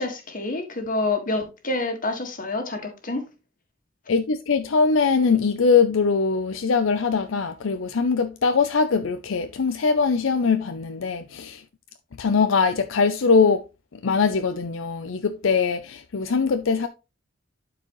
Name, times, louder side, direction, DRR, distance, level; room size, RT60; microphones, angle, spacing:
voice 1, 0.0-3.2, left 2 dB, 45° left, 1.7 m, -27 dB
voice 2, 4.1-11.6 12.2-13.6 13.9-16.9, left 5 dB, 80° left, 0.6 m, -22 dB
11.5 x 4.7 x 3.1 m
head